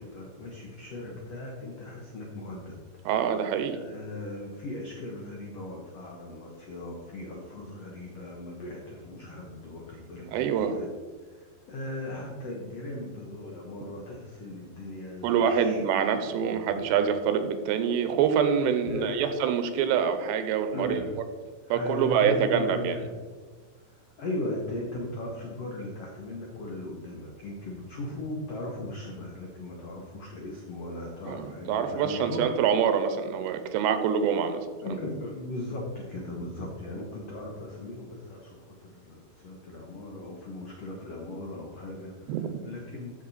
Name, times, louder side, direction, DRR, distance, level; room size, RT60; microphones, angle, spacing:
voice 1, 0.0-2.8 3.7-10.9 11.3-15.8 16.2-17.0 18.6-19.3 20.7-21.2 21.6-23.1 23.8-32.5 34.8-43.1, left 1 dB, 90° left, -1 dB, 1.4 m, -38 dB
voice 2, 3.1-3.8 10.3-10.8 15.2-21.0 21.7-23.0 31.3-34.7 42.3-42.6, right 7 dB, 90° right, 9 dB, 3.0 m, -26 dB
14.0 x 6.2 x 4.2 m, 1.4 s
omnidirectional pair, 4.9 m